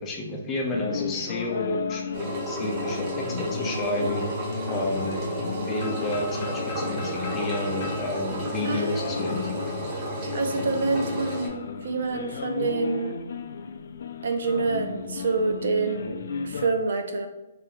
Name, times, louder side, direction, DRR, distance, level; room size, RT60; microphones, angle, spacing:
voice 1, 0.0-4.2 4.7-5.3 5.7-9.4, left 1 dB, 15° left, -1 dB, 0.6 m, -31 dB
sound 1, 0.7-16.7, left 6 dB, 60° left, 0.3 m, -34 dB
Engine, 2.1-11.5, right 1 dB, 30° right, 1.0 m, -32 dB
sound 2, 5.8-9.6, left 2 dB, 40° left, 1.0 m, -40 dB
voice 2, 8.6-9.1 10.3-13.1 14.2-16.2 16.4-17.3, right 4 dB, 70° right, 6 dB, 0.6 m, -27 dB
3.3 x 2.8 x 3.9 m, 0.96 s
hypercardioid pair, 165°, 0 cm